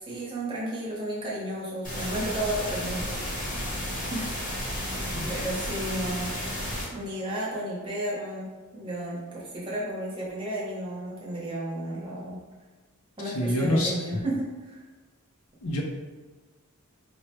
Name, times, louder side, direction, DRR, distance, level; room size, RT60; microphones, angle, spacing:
voice 1, 0.1-3.2 4.1-4.3 5.3-6.3 6.9-12.4 13.2-14.8, right 1 dB, 20° right, -6 dB, 0.9 m, -33 dB
sound 1, 1.8-6.8, equal, 35° left, 0.9 m, -32 dB
voice 2, 4.9-5.3 13.3-13.9 15.6-15.8, left 1 dB, 75° left, -1 dB, 0.6 m, -26 dB
4.6 x 2.1 x 3.1 m, 1.3 s
head